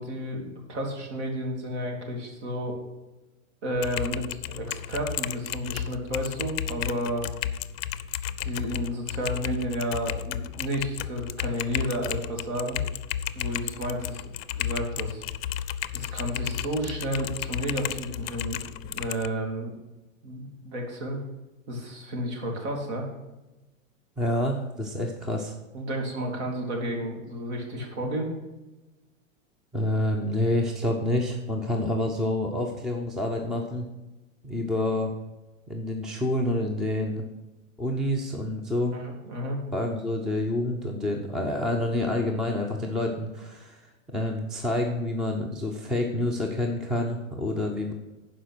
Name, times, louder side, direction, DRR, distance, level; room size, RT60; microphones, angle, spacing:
voice 1, 0.0-2.8 3.6-7.2 8.4-12.8 13.3-14.3 14.6-15.2 15.9-19.7 20.2-21.2 21.7-23.0 25.7-28.3 38.9-39.6, equal, 55° right, 1 dB, 2.9 m, -32 dB
Typing, 3.8-19.3, left 10 dB, 50° left, 0.5 m, -33 dB
voice 2, 24.2-25.6 29.7-33.9 34.4-35.1 35.7-37.3 37.8-39.0 39.7-43.8 44.1-47.9, left 1 dB, ahead, 1 dB, 0.4 m, -28 dB
11.5 x 5.0 x 6.0 m, 1.1 s
hypercardioid pair, 135°, 40 cm